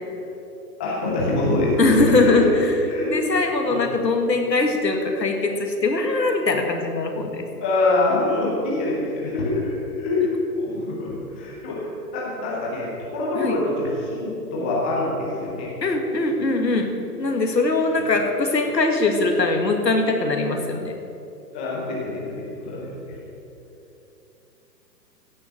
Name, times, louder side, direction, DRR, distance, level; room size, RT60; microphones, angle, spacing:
voice 1, 0.8-2.5 2.9-3.1 3.7-3.8 7.6-15.7 21.5-22.9, left 2 dB, 5° left, -5 dB, 0.4 m, -25 dB
voice 2, 1.8-2.7 3.0-7.5 13.4-13.5 15.8-16.9 17.2-20.9, left 3 dB, 80° left, 4 dB, 2.0 m, -21 dB
16.0 x 6.5 x 7.1 m, 2.9 s
figure-of-eight pair, 125°, 50 cm